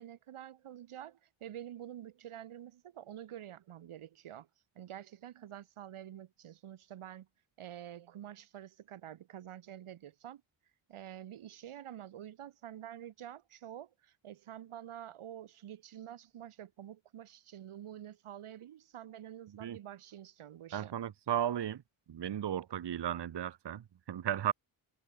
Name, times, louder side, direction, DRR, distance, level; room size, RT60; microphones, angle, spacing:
voice 1, 0.0-4.5 4.7-7.3 7.6-10.4 10.9-20.9, right 11 dB, 85° right, 1.4 m, -48 dB
voice 2, 20.7-21.8 22.1-24.5, right 10 dB, 55° right, 1.0 m, -35 dB
cardioid pair, 75°, 49 cm